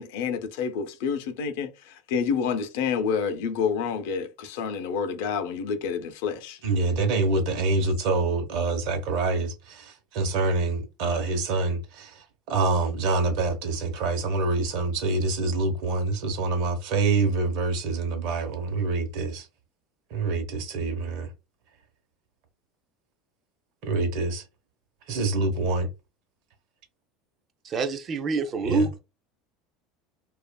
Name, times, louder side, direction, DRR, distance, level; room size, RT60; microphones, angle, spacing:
voice 1, 0.0-6.6, left 6 dB, 75° left, 0.5 m, -28 dB
voice 2, 6.6-12.1 12.5-19.5 20.1-21.3 23.8-24.4 25.1-25.9 28.6-28.9, right 3 dB, 65° right, 0.8 m, -26 dB
voice 3, 27.6-29.0, right 4 dB, 30° right, 0.4 m, -26 dB
2.8 x 2.4 x 2.2 m
cardioid pair, 150°, 0 cm